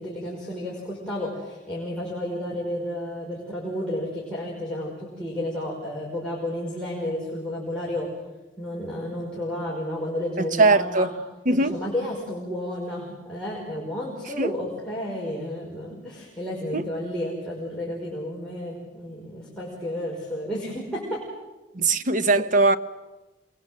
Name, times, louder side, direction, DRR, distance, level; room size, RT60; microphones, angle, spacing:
voice 1, 0.0-8.1 8.6-11.1 11.5-21.2 21.8-22.0, left 1 dB, 5° left, 5.6 m, -32 dB
voice 2, 10.4-11.1 11.4-11.8 14.4-14.5 16.7-16.8 21.7-22.8, right 3 dB, 50° right, 1.0 m, -20 dB
28.0 x 22.0 x 7.8 m
head